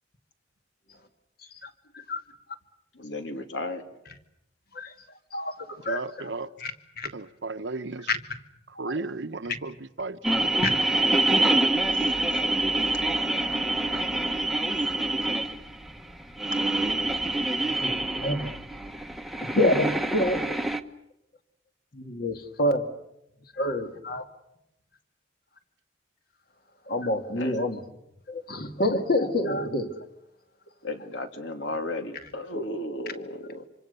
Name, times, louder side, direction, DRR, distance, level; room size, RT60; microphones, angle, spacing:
voice 1, 1.6-2.2 4.7-4.9 5.3-6.0 6.6-6.7 7.0-7.1 8.1-8.2 8.8-8.9 9.5-9.6 10.6-10.7 17.8-17.9 18.2-18.6 19.4-20.4 21.9-22.9 23.5-24.2 26.9-27.8 28.3-29.9, left 1 dB, 55° left, 2.3 m, -27 dB
voice 2, 2.9-3.8 11.9-12.1 27.3-27.5 30.8-33.7, left 2 dB, 75° left, 2.6 m, -34 dB
voice 3, 5.9-6.5 7.1-8.1 8.8-10.5, right 3 dB, 70° right, 1.0 m, -35 dB
sound 1, 10.2-20.8, right 2 dB, ahead, 1.0 m, -26 dB
26.0 x 25.5 x 6.9 m
head